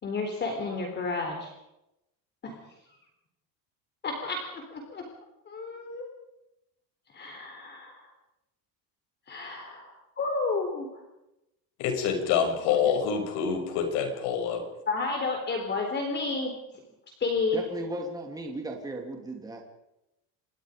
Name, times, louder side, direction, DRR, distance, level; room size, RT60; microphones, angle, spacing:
voice 1, 0.0-1.5 2.4-2.5 4.0-5.1 5.5-6.1 7.1-8.1 9.3-10.9 14.9-16.5 17.2-17.6, left 3 dB, 25° left, 3 dB, 3.8 m, -31 dB
voice 2, 11.8-14.6, left 7 dB, 80° left, 4 dB, 7.1 m, -26 dB
voice 3, 17.5-19.6, right 1 dB, 10° right, 2 dB, 2.7 m, -36 dB
27.5 x 23.0 x 5.2 m, 0.89 s
cardioid pair, 170°, 42 cm